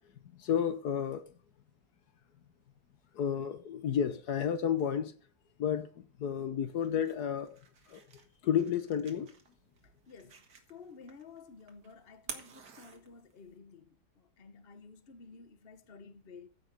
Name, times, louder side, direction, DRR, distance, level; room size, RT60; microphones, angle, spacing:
voice 1, 0.4-1.3 3.1-5.1 5.6-7.6 7.9-8.0 8.4-9.3, left 8 dB, 70° left, 1.5 m, -31 dB
sound 1, 6.6-13.6, right 5 dB, 85° right, 2.4 m, -51 dB
voice 2, 9.8-10.4 10.7-16.5, left 5 dB, 40° left, 1.3 m, -53 dB
14.5 x 5.6 x 6.7 m
omnidirectional pair, 1.7 m